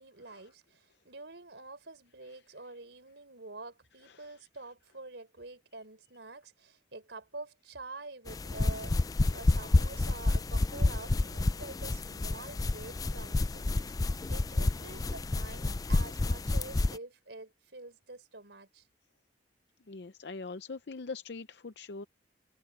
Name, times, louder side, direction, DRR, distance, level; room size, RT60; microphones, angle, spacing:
voice 1, 0.0-9.0 9.3-18.8, right 2 dB, 80° right, 4.2 m, -47 dB
sound 1, 8.3-17.0, left 2 dB, 20° left, 0.3 m, -29 dB
voice 2, 19.9-22.0, left 4 dB, 70° left, 0.6 m, -42 dB
head